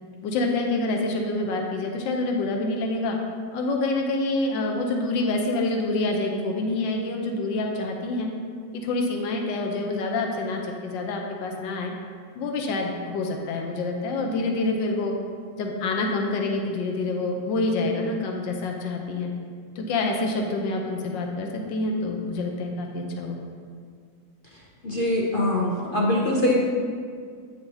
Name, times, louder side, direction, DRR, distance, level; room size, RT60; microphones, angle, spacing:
voice 1, 0.2-3.2 3.5-8.3 8.7-11.9 12.3-15.1 15.5-19.3 19.8-23.4, left 2 dB, 80° left, 1 dB, 1.4 m, -27 dB
voice 2, 24.8-26.6, left 1 dB, 60° left, -4 dB, 0.5 m, -23 dB
9.0 x 6.8 x 2.7 m, 2.1 s
omnidirectional pair, 2.0 m